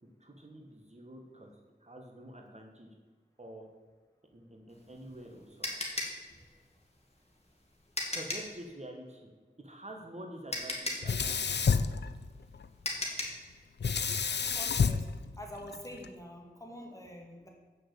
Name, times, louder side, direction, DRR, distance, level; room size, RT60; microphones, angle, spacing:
voice 1, 0.2-1.5 1.8-2.9 3.4-3.6 4.3-5.7 8.1-9.3 9.6-11.4, right 1 dB, 40° right, 2 dB, 1.4 m, -47 dB
sound 1, 4.7-8.6 10.0-10.1 10.5-13.5, left 2 dB, 35° left, 2.0 m, -37 dB
Sink (filling or washing), 11.0-12.7 13.8-16.1, left 6 dB, 75° left, 0.5 m, -30 dB
voice 2, 14.5-15.1 15.4-17.5, equal, 20° left, 0 dB, 2.2 m, -46 dB
7.6 x 6.6 x 8.0 m, 1.4 s
wide cardioid pair, 65°, 18 cm